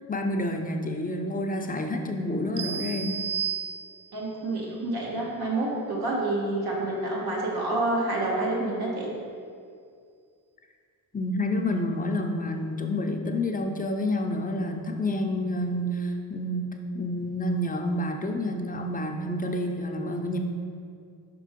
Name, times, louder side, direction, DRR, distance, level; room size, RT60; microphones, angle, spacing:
voice 1, 0.1-3.2 11.1-20.4, left 1 dB, 20° left, 3 dB, 0.6 m, -29 dB
sound 1, 2.6-4.3, right 7 dB, 55° right, 0.5 m, -32 dB
voice 2, 4.1-9.1, right 2 dB, 75° right, -4 dB, 1.5 m, -28 dB
4.9 x 3.7 x 5.1 m, 2.3 s
cardioid pair, 65°, 38 cm